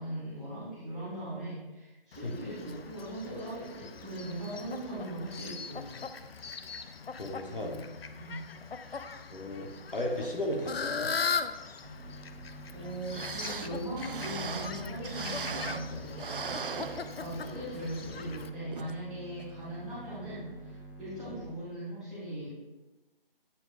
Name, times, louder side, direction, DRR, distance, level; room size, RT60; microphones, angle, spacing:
voice 1, 0.0-6.0 8.2-8.5 12.7-22.6, right 1 dB, ahead, -19 dB, 1.8 m, -40 dB
Fowl, 2.1-18.5, left 5 dB, 80° left, 0.5 m, -40 dB
voice 2, 7.2-7.8 9.3-11.1 20.3-20.4 21.3-21.4, left 1 dB, 65° left, 0 dB, 1.2 m, -35 dB
sound 1, 11.8-21.4, right 1 dB, 25° right, 0.9 m, -48 dB
sound 2, 12.8-12.9 13.1-15.9 16.2-17.6 18.0-18.1 18.7-19.0 19.4-19.5, right 5 dB, 65° right, 0.4 m, -39 dB
8.6 x 4.7 x 2.5 m, 1.1 s
figure-of-eight pair, 165°, 29 cm